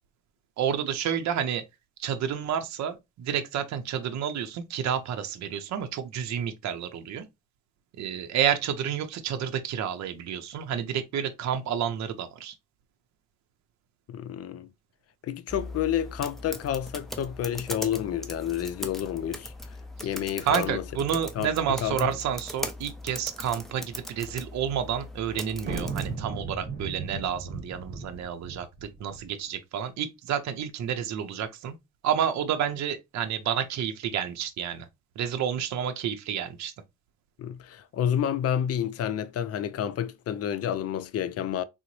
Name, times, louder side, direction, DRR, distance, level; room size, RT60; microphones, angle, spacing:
voice 1, 0.6-1.6 2.0-7.3 8.0-12.6 20.4-31.7 32.0-34.9 35.2-36.7, right 9 dB, 65° right, 0.6 m, -30 dB
voice 2, 14.1-14.7 15.2-19.5 20.0-20.8 21.4-21.5 21.8-22.1 37.4-41.6, left 10 dB, 55° left, 0.4 m, -29 dB
sound 1, 15.5-26.2, left 1 dB, ahead, 0.5 m, -40 dB
sound 2, 25.6-29.2, right 4 dB, 35° right, 1.1 m, -36 dB
3.7 x 2.0 x 3.0 m
cardioid pair, 90°, 30 cm